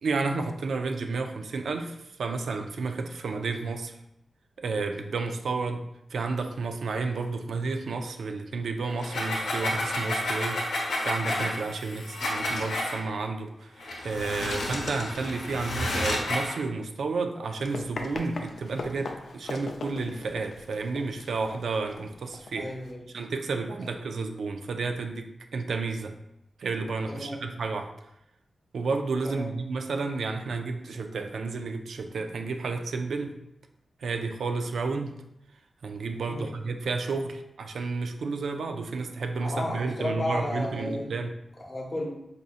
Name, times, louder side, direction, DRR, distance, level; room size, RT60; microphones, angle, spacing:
voice 1, 0.0-3.9 4.6-22.7 23.1-26.1 26.6-27.9 28.7-33.4 34.0-35.1 35.8-41.3, right 4 dB, 85° right, 6 dB, 0.3 m, -31 dB
sound 1, 8.9-13.0 13.8-16.6, left 1 dB, 90° left, 1.0 m, -30 dB
Run, 17.4-22.9, left 3 dB, 70° left, 0.4 m, -40 dB
voice 2, 22.6-23.1 23.8-23.9 27.1-27.4 29.2-29.5 36.3-36.5 39.4-41.1 41.6-42.1, left 1 dB, 30° left, -1 dB, 0.8 m, -33 dB
4.8 x 2.7 x 2.4 m, 0.84 s
wide cardioid pair, 135°, 0 cm